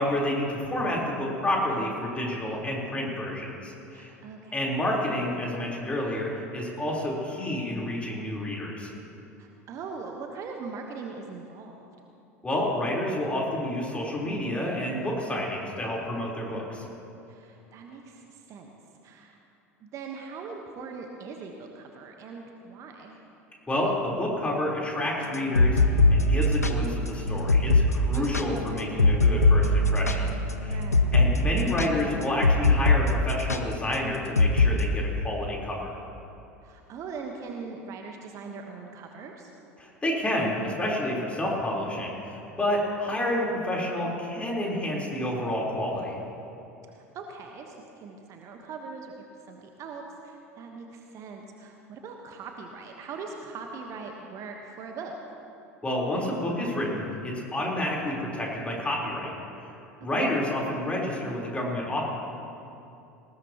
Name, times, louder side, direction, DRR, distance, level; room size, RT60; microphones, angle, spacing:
voice 1, 0.0-4.1 4.5-8.9 12.4-16.8 23.7-25.8 26.1-30.3 30.6-30.8 31.1-35.9 39.8-46.2 55.8-59.3 60.0-62.0, left 1 dB, 15° left, -3 dB, 4.0 m, -29 dB
voice 2, 3.9-4.5 9.4-11.8 17.3-18.7 19.0-19.4 19.8-23.2 28.1-28.5 30.1-30.3 30.6-31.1 36.6-39.5 46.9-49.1 49.5-55.1 60.2-60.3, right 4 dB, 40° right, 3 dB, 1.3 m, -41 dB
sound 1, 25.3-33.0 33.3-33.6 34.4-34.7, left 2 dB, 85° left, 0.7 m, -21 dB
19.5 x 17.5 x 3.0 m, 2.8 s
figure-of-eight pair, 75°, 8 cm